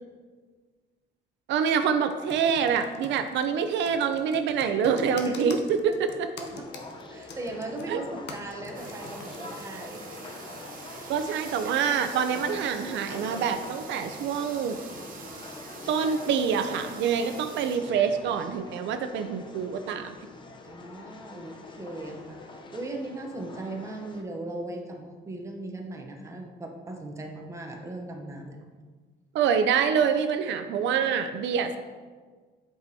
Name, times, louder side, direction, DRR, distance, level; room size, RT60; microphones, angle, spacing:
voice 1, 1.5-5.9 7.9-8.0 11.1-14.8 15.9-20.1 29.3-31.8, right 7 dB, 80° right, 8 dB, 0.5 m, -26 dB
Computer keyboard, 2.1-9.4, left 4 dB, 70° left, 0.7 m, -44 dB
voice 2, 5.2-5.6 6.4-6.7 7.1-10.0 10.9-11.1 20.6-28.6, right 2 dB, 15° right, 1 dB, 0.7 m, -38 dB
sound 1, 6.4-24.2, left 3 dB, 25° left, 0.5 m, -44 dB
sound 2, 8.7-17.8, right 4 dB, 50° right, 0.7 m, -44 dB
8.0 x 4.9 x 2.7 m, 1.5 s
cardioid pair, 155°, 18 cm